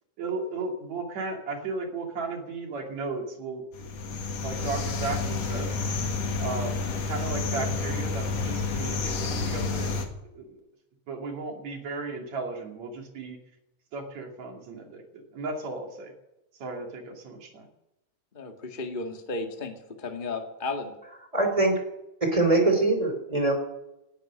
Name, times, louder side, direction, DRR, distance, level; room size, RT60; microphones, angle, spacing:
voice 1, 0.2-5.8 6.4-10.0 10.4-10.6 11.1-13.4 13.9-16.1 16.6-17.7, right 3 dB, 60° right, 2 dB, 3.8 m, -35 dB
sound 1, 3.7-10.1, left 4 dB, 55° left, 3.0 m, -30 dB
voice 2, 18.3-20.9, left 3 dB, 20° left, 3 dB, 1.4 m, -34 dB
voice 3, 21.3-21.8 22.2-23.5, right 2 dB, 10° right, 5 dB, 3.1 m, -22 dB
19.0 x 11.0 x 6.5 m, 0.92 s
omnidirectional pair, 3.6 m